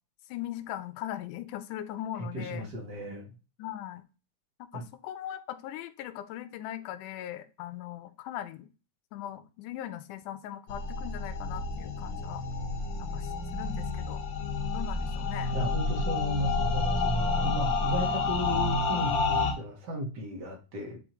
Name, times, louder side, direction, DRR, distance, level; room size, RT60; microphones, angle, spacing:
voice 1, 0.3-2.7 3.6-4.0 4.6-8.7 9.1-12.4 13.0-14.2 14.7-15.5, left 12 dB, 80° left, 11 dB, 2.1 m, -39 dB
voice 2, 2.3-3.3 4.7-4.8 15.5-21.0, equal, 45° right, 2 dB, 1.4 m, -34 dB
sound 1, 10.7-19.5, left 3 dB, 60° left, 1.3 m, -29 dB
8.9 x 4.4 x 3.0 m, 0.33 s
omnidirectional pair, 3.8 m